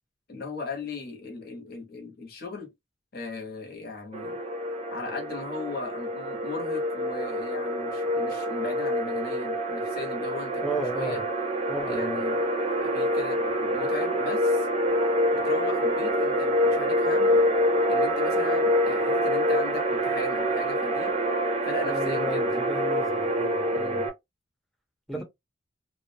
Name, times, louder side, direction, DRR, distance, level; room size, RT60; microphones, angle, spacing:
voice 1, 0.3-2.7 3.1-4.4 4.9-11.2 11.9-12.4 12.8-14.7 15.3-17.6 17.9-21.1 21.6-22.7 23.7-24.1 25.1-25.2, left 3 dB, 55° left, 0.9 m, -37 dB
sound 1, 4.1-24.1, equal, 35° right, 0.6 m, -26 dB
voice 2, 10.6-11.2 11.7-12.2 21.8-24.0 25.1-25.2, right 1 dB, ahead, 0.7 m, -33 dB
2.4 x 2.1 x 2.6 m
head